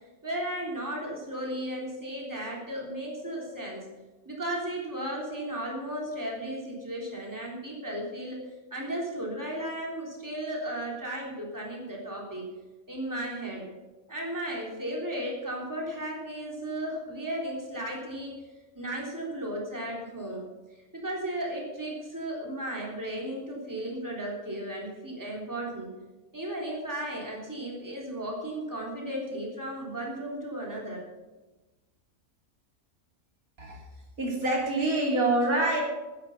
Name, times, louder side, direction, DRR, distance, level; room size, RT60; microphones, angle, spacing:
voice 1, 0.2-3.9 4.2-8.4 8.7-12.5 12.9-13.7 14.1-18.4 18.7-20.5 20.7-26.0 26.3-31.0, right 1 dB, 15° right, -2 dB, 3.4 m, -35 dB
voice 2, 34.2-35.8, right 2 dB, 85° right, -2 dB, 3.6 m, -26 dB
11.5 x 10.0 x 7.1 m, 1.1 s
omnidirectional pair, 1.5 m